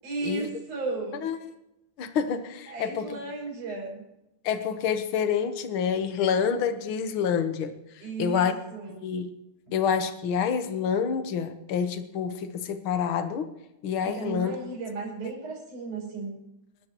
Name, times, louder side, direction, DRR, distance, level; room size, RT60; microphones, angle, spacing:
voice 1, 0.0-1.3 2.7-4.0 8.0-9.0 9.7-9.8 14.0-16.4, right 3 dB, 75° right, -3 dB, 7.5 m, -35 dB
voice 2, 1.2-1.5 2.0-3.2 4.4-8.5 8.9-9.3 9.7-13.5 13.8-14.5, left 7 dB, 55° left, 8 dB, 1.6 m, -28 dB
28.5 x 13.0 x 3.0 m, 0.89 s
omnidirectional pair, 3.6 m